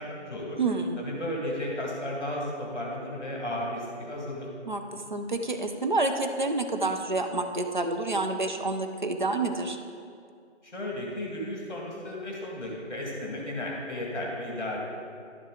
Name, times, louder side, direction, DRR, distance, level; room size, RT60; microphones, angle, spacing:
voice 1, 0.0-0.6 1.0-4.5 10.6-14.8, left 1 dB, 40° left, -3 dB, 1.9 m, -34 dB
voice 2, 0.6-1.0 4.7-9.8, right 2 dB, 40° right, 5 dB, 0.5 m, -28 dB
11.5 x 7.4 x 3.9 m, 2.3 s
figure-of-eight pair, 165°, 36 cm